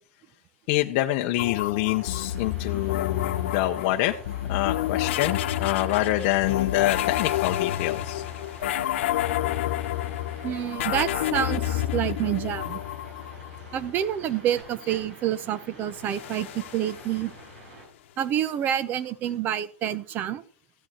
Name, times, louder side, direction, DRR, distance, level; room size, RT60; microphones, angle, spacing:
voice 1, 0.7-4.1 4.5-8.2, left 15 dB, 40° left, 4 dB, 0.8 m, -26 dB
sound 1, 1.4-13.9 16.0-17.6, left 13 dB, 65° left, 1.1 m, -29 dB
sound 2, 1.9-17.9, right 2 dB, 75° right, 6.0 m, -48 dB
voice 2, 10.4-12.8 13.7-17.3 18.2-20.4, right 10 dB, 25° right, 17 dB, 0.7 m, -28 dB
14.5 x 8.9 x 4.3 m, 0.43 s
supercardioid pair, 160°, 7 cm